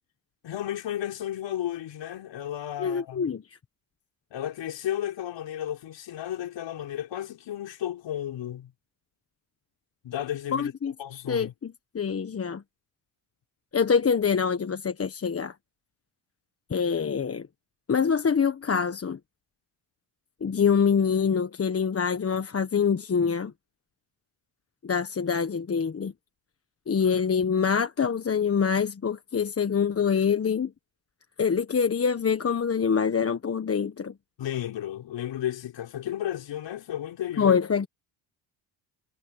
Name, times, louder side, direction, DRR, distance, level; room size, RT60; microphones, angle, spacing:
voice 1, 0.4-3.2 4.3-8.7 10.0-10.7 11.0-11.5 34.4-37.6, left 11 dB, 60° left, 4.6 m, -33 dB
voice 2, 2.8-3.6 10.5-10.9 11.3-12.6 13.7-15.5 16.7-17.5 17.9-19.2 20.4-23.5 24.8-26.1 26.9-30.7 31.4-34.1 37.4-37.9, left 6 dB, 30° left, 1.4 m, -25 dB
supercardioid pair, 75°, 48 cm